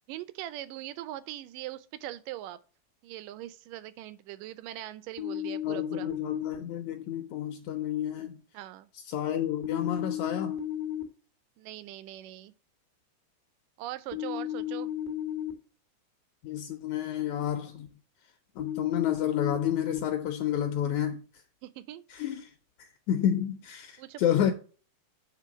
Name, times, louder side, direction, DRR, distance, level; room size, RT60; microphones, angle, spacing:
voice 1, 0.1-2.6 3.0-6.1 8.5-8.9 11.6-12.5 13.8-14.9 21.6-22.0 24.0-24.5, right 14 dB, 80° right, 2.1 m, -41 dB
sound 1, 5.2-6.5 9.6-11.0 14.1-15.5 18.6-20.0, left 11 dB, 60° left, 0.5 m, -33 dB
voice 2, 5.7-8.4 9.0-10.6 16.4-17.9 18.6-21.2 22.1-22.5 22.8-24.5, left 10 dB, 80° left, 1.7 m, -30 dB
7.5 x 3.4 x 6.0 m
omnidirectional pair, 3.9 m